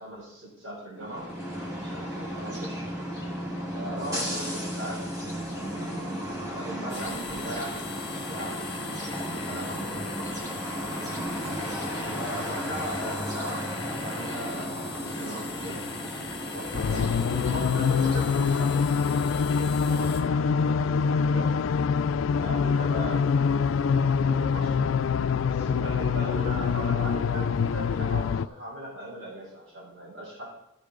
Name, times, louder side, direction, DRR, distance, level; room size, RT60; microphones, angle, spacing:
voice 1, 0.0-1.3 1.8-2.9 3.7-5.1 6.4-7.9 8.2-10.3 12.1-16.0 16.5-21.6 22.4-25.0 25.4-30.5, equal, 75° right, -5 dB, 4.3 m, -39 dB
sound 1, 1.0-19.1, equal, 15° right, 1.9 m, -34 dB
sound 2, 6.9-20.2, left 5 dB, 25° left, 1.1 m, -41 dB
sound 3, 16.7-28.5, left 6 dB, 85° left, 0.3 m, -25 dB
14.5 x 6.6 x 3.8 m, 0.88 s
head